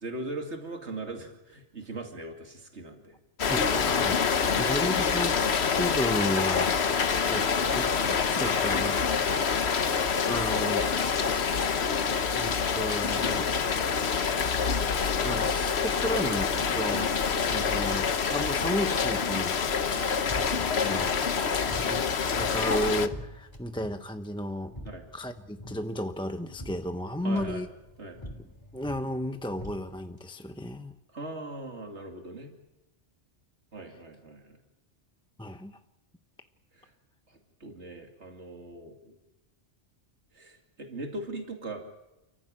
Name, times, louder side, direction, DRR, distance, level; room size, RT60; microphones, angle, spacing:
voice 1, 0.0-3.2 4.4-4.7 17.5-17.7 19.9-20.1 24.8-25.0 27.2-27.6 28.0-28.2 31.1-32.5 33.7-34.6 36.7-36.9 37.3-39.2 40.3-41.8, right 2 dB, 70° right, 3 dB, 2.9 m, -40 dB
Rain, 3.4-23.1, left 6 dB, 65° left, 1.3 m, -26 dB
voice 2, 3.5-9.1 10.3-10.9 11.3-12.0 12.3-14.2 15.2-18.1 18.3-19.6 20.5-24.7 25.1-27.7 28.7-30.9 35.4-35.8, equal, 5° left, 7 dB, 0.8 m, -34 dB
sound 1, 20.1-30.3, equal, 25° left, 3.3 m, -46 dB
29.5 x 15.0 x 9.0 m, 0.95 s
omnidirectional pair, 1.2 m